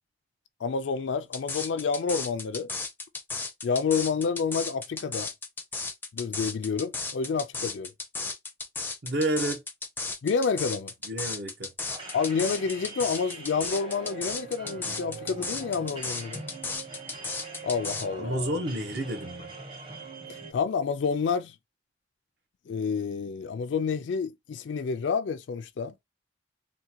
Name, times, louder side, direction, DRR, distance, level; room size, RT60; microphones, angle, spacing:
voice 1, 0.6-2.7 3.6-5.3 6.1-7.9 10.2-10.9 12.1-16.4 17.6-18.5 20.3-21.5 22.7-25.9, left 5 dB, 80° left, 0.4 m, -29 dB
sound 1, 1.3-18.1, left 4 dB, 10° left, 0.4 m, -34 dB
voice 2, 9.0-9.6 11.0-11.7 18.2-19.5, right 1 dB, 60° right, 0.8 m, -30 dB
sound 2, 11.9-20.5, right 4 dB, 25° right, 0.8 m, -42 dB
3.6 x 2.2 x 2.8 m
head